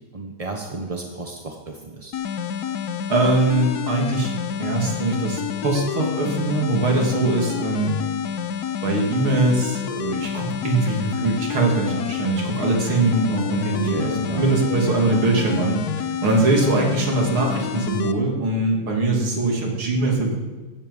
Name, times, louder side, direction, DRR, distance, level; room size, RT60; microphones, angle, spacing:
voice 1, 0.1-2.1 13.7-14.5, right 3 dB, 25° right, 2 dB, 0.8 m, -33 dB
sound 1, 2.1-18.1, left 8 dB, 60° left, 1.1 m, -28 dB
voice 2, 3.1-4.3 4.6-7.9 8.8-15.8 16.2-20.4, right 2 dB, 70° right, 0 dB, 3.6 m, -22 dB
16.5 x 15.0 x 5.6 m, 1.3 s
omnidirectional pair, 2.4 m